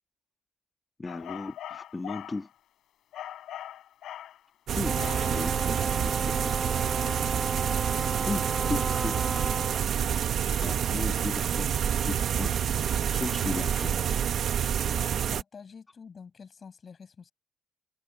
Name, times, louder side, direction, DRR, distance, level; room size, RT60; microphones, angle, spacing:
voice 1, 1.0-2.5 4.7-6.8 7.4-7.7 8.3-9.6 10.6-12.6 13.0-14.0, left 3 dB, 20° left, 1.8 m, -36 dB
sound 1, 1.1-2.4 3.1-4.4 5.0-5.4, left 11 dB, 75° left, 6.1 m, -41 dB
sound 2, 4.7-15.4, right 9 dB, 65° right, 1.8 m, -28 dB
Wind instrument woodwind instrument, 4.8-9.9, right 2 dB, 15° right, 0.7 m, -34 dB
voice 2, 15.0-17.3, left 6 dB, 45° left, 6.8 m, -47 dB
cardioid pair, 90°, 0 cm